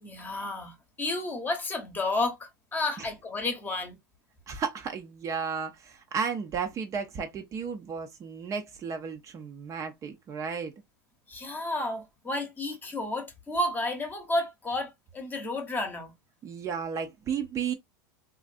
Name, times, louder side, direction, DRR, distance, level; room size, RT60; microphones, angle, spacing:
voice 1, 0.0-4.0 11.3-16.1, left 2 dB, 20° left, 0.9 m, -31 dB
voice 2, 4.5-10.7 16.4-17.7, right 6 dB, 30° right, 0.5 m, -33 dB
3.1 x 2.4 x 2.5 m
supercardioid pair, 120°, 10 cm